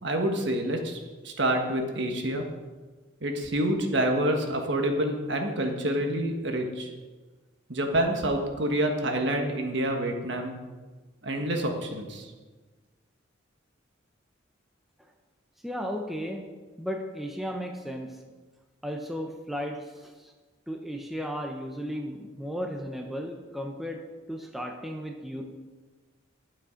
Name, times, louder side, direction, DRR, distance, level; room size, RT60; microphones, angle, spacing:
voice 1, 0.0-1.0 1.2-2.4 3.2-6.9 7.7-10.6 11.2-12.2, right 1 dB, 60° right, 3 dB, 1.4 m, -27 dB
voice 2, 15.6-16.4 16.8-18.1 18.8-20.1 20.7-24.0 24.3-25.4, equal, ahead, 2 dB, 0.8 m, -34 dB
11.5 x 7.7 x 5.1 m, 1.3 s
head